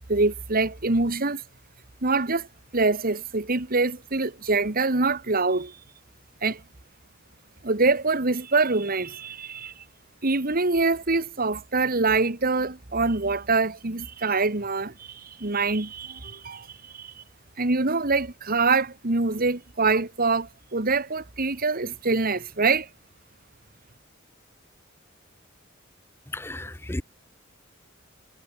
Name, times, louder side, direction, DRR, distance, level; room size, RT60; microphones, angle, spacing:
voice 1, 0.1-1.4 2.0-2.5 2.7-5.8 6.4-6.6 7.6-9.7 10.2-16.7 16.9-17.1 17.6-22.9, right 3 dB, 45° right, 1.8 m, -24 dB
voice 2, 26.3-27.0, left 1 dB, 10° left, 1.0 m, -33 dB
head